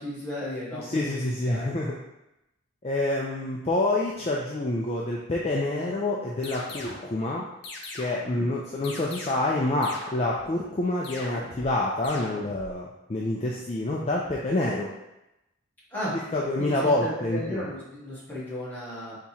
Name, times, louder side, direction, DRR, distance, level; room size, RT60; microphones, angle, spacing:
voice 1, 0.0-1.8 8.2-8.5 15.9-16.1 16.6-19.2, left 1 dB, 10° left, -9 dB, 1.3 m, -35 dB
voice 2, 0.7-2.0 2.8-7.5 7.9-14.9 16.3-17.6, left 2 dB, 30° left, -3 dB, 0.4 m, -27 dB
sound 1, 6.4-7.1 7.6-8.4 8.8-9.6 9.8-10.5 11.0-11.7 12.0-12.7, left 2 dB, 55° left, 0.7 m, -40 dB
3.5 x 2.9 x 4.1 m, 0.91 s
head